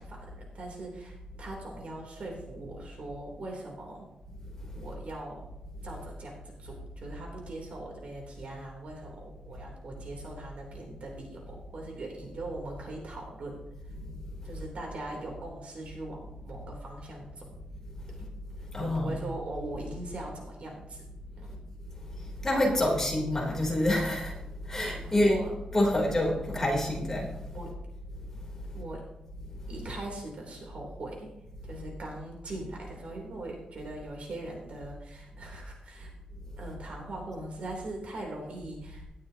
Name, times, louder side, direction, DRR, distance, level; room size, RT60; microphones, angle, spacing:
voice 1, 0.0-4.1 4.7-5.5 5.8-13.6 14.4-17.4 18.2-18.3 18.8-21.0 21.4-21.6 25.2-25.5 26.1-26.4 27.5-27.8 28.7-29.0 29.7-31.3 31.6-36.1 36.6-39.0, right 2 dB, 65° right, 0 dB, 3.4 m, -41 dB
voice 2, 18.7-19.2 22.1-25.4 25.7-27.4 29.7-29.8 36.7-36.8, left 1 dB, 20° left, -1 dB, 3.4 m, -28 dB
18.0 x 12.0 x 2.9 m, 0.91 s
wide cardioid pair, 130°, 2 cm